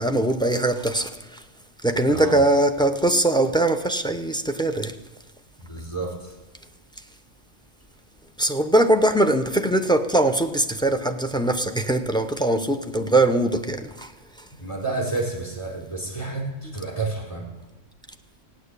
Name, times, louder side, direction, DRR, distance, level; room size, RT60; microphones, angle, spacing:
voice 1, 0.0-1.4 1.8-4.9 8.4-14.1, right 1 dB, 5° left, 0.6 m, -21 dB
voice 2, 2.1-2.4 5.6-6.3 14.6-17.5, right 3 dB, 25° left, 4.2 m, -30 dB
15.5 x 9.6 x 8.3 m
omnidirectional pair, 1.3 m